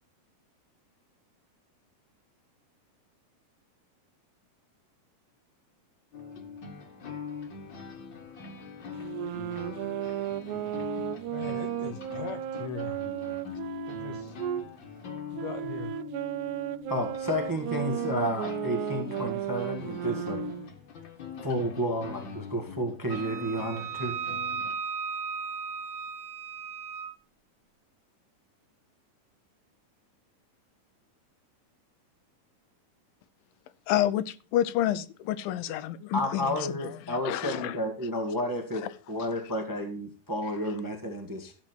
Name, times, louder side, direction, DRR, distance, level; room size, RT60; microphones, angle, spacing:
sound 1, 6.1-24.7, left 6 dB, 45° left, 1.7 m, -42 dB
sound 2, 9.0-14.7 15.3-20.7, right 12 dB, 75° right, 1.8 m, -34 dB
voice 1, 11.3-13.0 13.9-14.3 15.3-15.9, left 8 dB, 70° left, 1.7 m, -40 dB
voice 2, 16.9-20.4 21.4-24.2 36.1-41.5, equal, 20° right, 0.5 m, -31 dB
Wind instrument woodwind instrument, 23.1-27.1, right 5 dB, 40° right, 1.3 m, -36 dB
voice 3, 33.9-37.8 38.8-38.9, left 12 dB, 85° left, 2.5 m, -29 dB
13.5 x 7.3 x 4.5 m
omnidirectional pair, 4.0 m